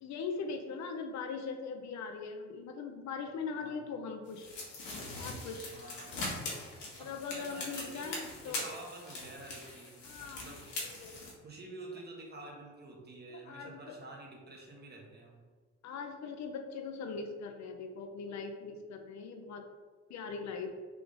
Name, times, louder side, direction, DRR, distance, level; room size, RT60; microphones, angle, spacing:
voice 1, 0.0-4.5 5.2-5.7 7.0-8.7 10.0-11.3 13.5-14.0 15.8-19.6 20.1-20.7, left 5 dB, 65° left, 5 dB, 0.5 m, -41 dB
sound 1, 4.3-11.3, left 2 dB, 80° left, 1.1 m, -42 dB
voice 2, 5.7-6.2 7.0-8.1 8.5-10.6 11.4-15.4, right 2 dB, 35° right, 0 dB, 0.9 m, -49 dB
3.5 x 2.4 x 3.6 m, 1.5 s
cardioid pair, 90°, 30 cm